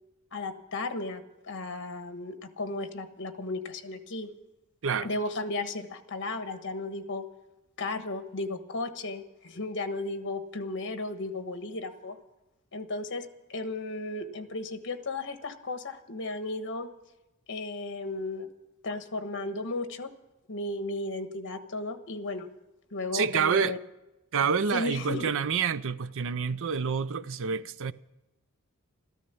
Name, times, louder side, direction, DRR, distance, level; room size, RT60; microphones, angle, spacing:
voice 1, 0.3-4.3 5.0-7.2 7.8-12.2 12.7-16.9 17.5-18.5 18.8-20.1 20.5-22.5 22.9-23.8 24.7-25.3, left 2 dB, 55° left, 1.3 m, -34 dB
voice 2, 23.1-23.8 24.3-27.9, right 6 dB, 60° right, 0.5 m, -28 dB
13.5 x 13.5 x 7.0 m
head